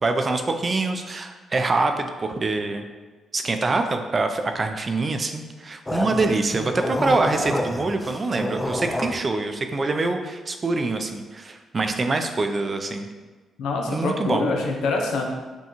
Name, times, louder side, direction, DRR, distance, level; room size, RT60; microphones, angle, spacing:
voice 1, 0.0-2.8 3.3-13.1 13.9-14.4, right 3 dB, 40° right, 6 dB, 0.4 m, -25 dB
sound 1, 5.9-9.2, left 1 dB, 15° left, 0.4 m, -28 dB
voice 2, 13.6-15.3, left 3 dB, 75° left, 1 dB, 0.6 m, -25 dB
5.4 x 2.3 x 3.0 m, 1.3 s
supercardioid pair, 55°, 0 cm